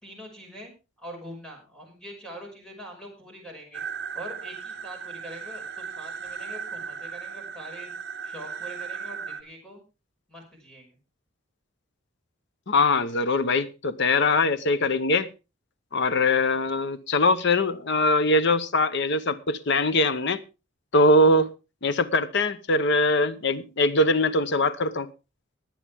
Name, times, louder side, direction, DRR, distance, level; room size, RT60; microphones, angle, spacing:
voice 1, 0.0-0.7 1.0-3.8 4.1-7.9 8.2-9.8 10.3-11.0, equal, 5° left, 5.6 m, -43 dB
ps au Just about to be hit by insanity, 3.7-9.4, right 6 dB, 55° right, 1.1 m, -36 dB
voice 2, 12.7-15.3 15.9-20.4 20.9-21.5 21.8-25.1, left 2 dB, 60° left, 0.9 m, -22 dB
20.0 x 8.8 x 3.5 m
head